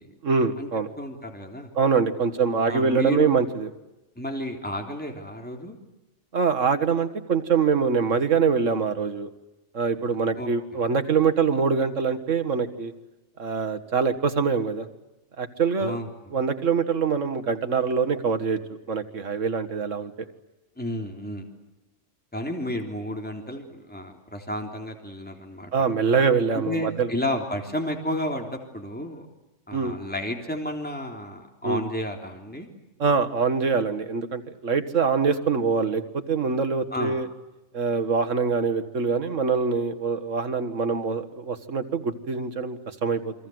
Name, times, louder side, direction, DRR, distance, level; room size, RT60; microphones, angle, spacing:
voice 1, 0.2-0.9 1.8-3.7 6.3-9.3 9.7-12.9 13.4-14.9 15.4-16.0 16.3-18.6 18.9-20.1 25.7-27.1 29.7-30.0 31.6-31.8 33.0-37.3 37.7-43.3, right 5 dB, 75° right, 9 dB, 2.0 m, -24 dB
voice 2, 1.0-1.7 2.7-3.4 4.2-5.7 10.4-10.5 15.8-16.1 20.8-21.5 22.3-25.7 26.6-29.3 29.7-32.7 36.9-37.2, left 1 dB, 5° left, 3 dB, 3.4 m, -31 dB
29.0 x 23.5 x 7.9 m, 1.0 s
omnidirectional pair, 1.3 m